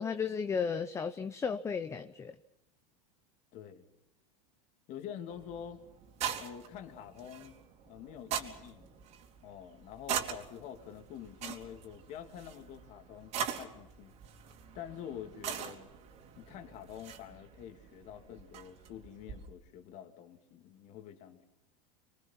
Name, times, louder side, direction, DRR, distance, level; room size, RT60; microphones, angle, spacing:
voice 1, 0.0-2.4, left 6 dB, 15° left, 0.8 m, -34 dB
voice 2, 3.5-3.8 4.9-5.8 6.4-7.5 7.9-8.9 9.4-14.2 14.7-15.9 16.4-21.4, left 9 dB, 45° left, 3.1 m, -47 dB
sound 1, 5.3-19.5, right 8 dB, 40° right, 3.3 m, -42 dB
26.5 x 23.0 x 6.0 m
supercardioid pair, 145°, 17 cm